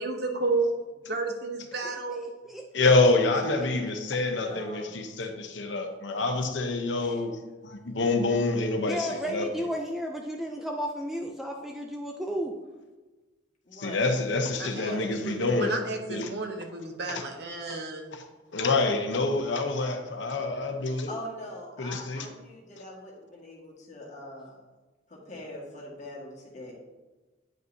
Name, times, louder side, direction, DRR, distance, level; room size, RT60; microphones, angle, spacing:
voice 1, 0.0-0.7 1.1-2.3 14.6-18.1, right 3 dB, 60° right, 4 dB, 0.9 m, -32 dB
voice 2, 1.8-2.2 2.4-2.9 7.0-7.2 8.9-12.5, equal, ahead, 1 dB, 0.4 m, -33 dB
voice 3, 2.7-7.4 7.6-9.5 13.8-15.7 16.1-16.3 17.1-17.2 18.1-18.2 18.5-21.1 21.8-22.3, left 3 dB, 75° left, 5 dB, 0.8 m, -26 dB
voice 4, 4.2-5.0 13.6-14.1 14.6-15.1 21.1-24.6 25.1-26.7, left 1 dB, 40° left, -3 dB, 1.8 m, -42 dB
9.2 x 5.3 x 2.7 m, 1.2 s
head